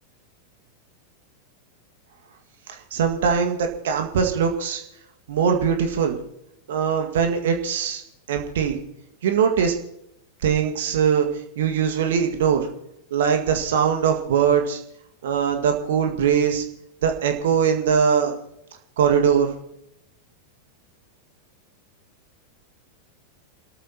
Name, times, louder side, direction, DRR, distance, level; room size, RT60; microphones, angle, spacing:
voice 1, 2.7-4.8 5.3-6.2 6.7-8.0 8.3-8.8 9.2-9.7 10.4-11.3 11.6-12.7 13.1-14.8 15.2-16.6 17.0-18.3 19.0-19.5, right 7 dB, 60° right, 4 dB, 1.9 m, -21 dB
28.5 x 13.5 x 3.0 m, 0.79 s
figure-of-eight pair, 90°, 0 cm